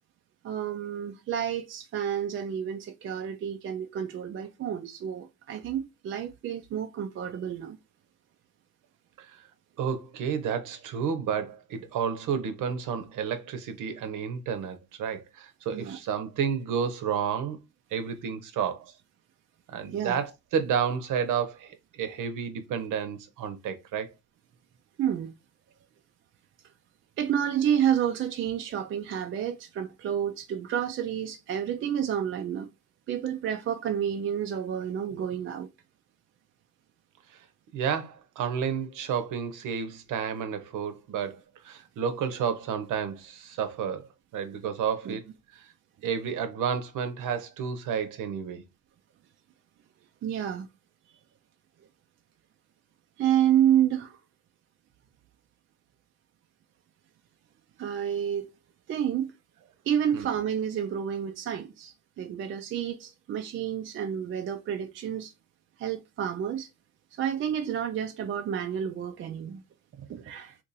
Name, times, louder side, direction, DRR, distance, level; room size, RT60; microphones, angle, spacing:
voice 1, 0.4-7.8 15.7-16.0 19.9-20.2 25.0-25.3 27.2-32.7 33.1-35.7 45.1-45.2 50.2-50.7 53.2-54.2 57.8-58.5 58.9-59.3 59.9-65.3 65.8-66.7 67.1-69.6 70.0-70.6, right 9 dB, 35° right, 0.4 m, -29 dB
voice 2, 9.8-17.6 17.9-19.0 19.7-24.1 37.3-37.4 37.7-45.3 45.5-45.7 46.0-48.6 60.1-60.3, right 7 dB, 55° right, 0.8 m, -31 dB
2.6 x 2.5 x 3.9 m
supercardioid pair, 85°, 37 cm